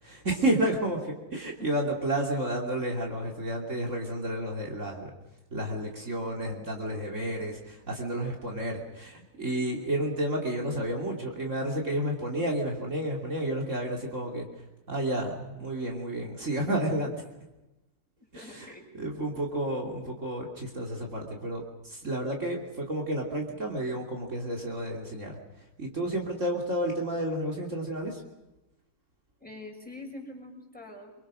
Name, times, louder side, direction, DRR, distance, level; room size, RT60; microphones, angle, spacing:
voice 1, 0.0-5.1 5.5-17.1 18.3-28.2, right 1 dB, 50° right, 0 dB, 3.2 m, -31 dB
voice 2, 18.2-18.9 29.4-31.1, left 2 dB, 5° left, 0 dB, 6.0 m, -44 dB
26.0 x 23.5 x 6.4 m, 1.0 s
omnidirectional pair, 1.6 m